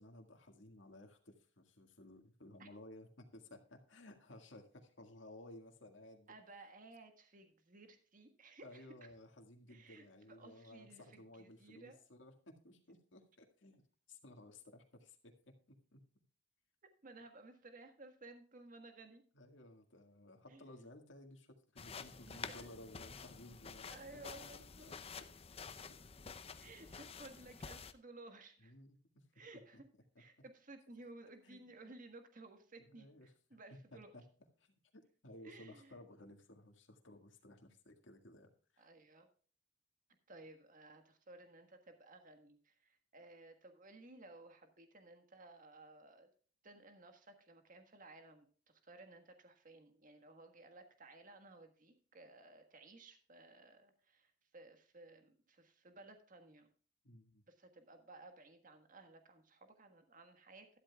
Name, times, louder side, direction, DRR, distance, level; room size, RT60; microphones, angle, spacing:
voice 1, 0.0-6.3 8.6-13.8 14.1-15.3 15.9-16.0 19.3-24.0 24.4-24.5 24.8-24.9 28.6-29.0 29.7-29.8 31.4-31.7 32.8-33.3 34.1-34.2 34.6-38.9 57.0-57.4, left 1 dB, 75° left, 4 dB, 1.9 m, -57 dB
voice 2, 6.3-8.9 9.7-12.0 17.0-19.2 20.5-20.7 22.3-22.7 23.9-25.2 26.6-28.7 29.3-29.8 30.2-34.2 35.4-36.0 38.8-39.3 40.3-46.3 46.6-56.7 57.5-60.7, right 2 dB, 45° right, 6 dB, 1.5 m, -57 dB
sound 1, 21.8-27.9, left 5 dB, 30° left, 0.6 m, -50 dB
13.0 x 12.0 x 2.3 m, 0.42 s
head